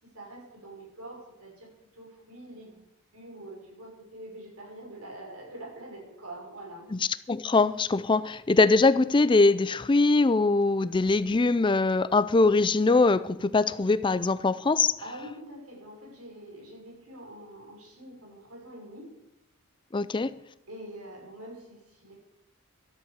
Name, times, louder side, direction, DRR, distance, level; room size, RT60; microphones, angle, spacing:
voice 1, 0.0-2.8 3.1-6.9 15.0-19.2 20.7-22.2, right 1 dB, 90° right, 5.7 m, -45 dB
voice 2, 7.3-14.9 19.9-20.3, left 3 dB, 20° left, 0.4 m, -22 dB
12.5 x 8.2 x 8.1 m
head